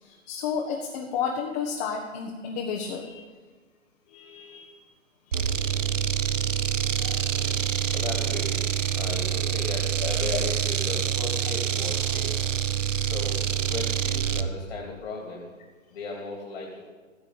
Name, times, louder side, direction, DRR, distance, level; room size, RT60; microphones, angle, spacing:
voice 1, 0.0-3.3 4.1-4.7 5.5-5.8 7.0-7.2 7.9-8.0 10.3-10.4, left 6 dB, 30° left, 0 dB, 1.6 m, -32 dB
sound 1, 5.3-14.5, right 9 dB, 70° right, 0.9 m, -26 dB
voice 2, 6.7-7.5 7.9-12.4 13.0-13.4 13.7-15.5 15.9-16.9, left 3 dB, 50° left, -1 dB, 3.0 m, -37 dB
15.5 x 6.7 x 8.5 m, 1.4 s
figure-of-eight pair, 130°, 39 cm